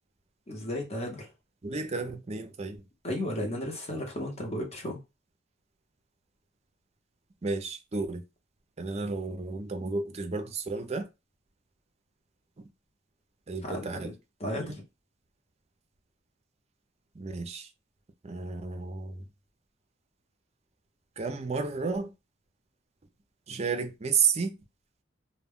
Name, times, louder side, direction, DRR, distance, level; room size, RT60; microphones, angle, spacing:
voice 1, 0.5-1.3 3.0-5.0 13.6-14.1 14.4-14.7, left 1 dB, 35° left, 0.9 m, -34 dB
voice 2, 1.6-2.8 7.4-8.2 8.8-11.1 13.5-14.1 14.6-14.8 17.1-17.7 18.2-19.2 21.2-22.1 23.5-24.5, right 5 dB, 35° right, 0.5 m, -32 dB
2.2 x 2.1 x 3.5 m
head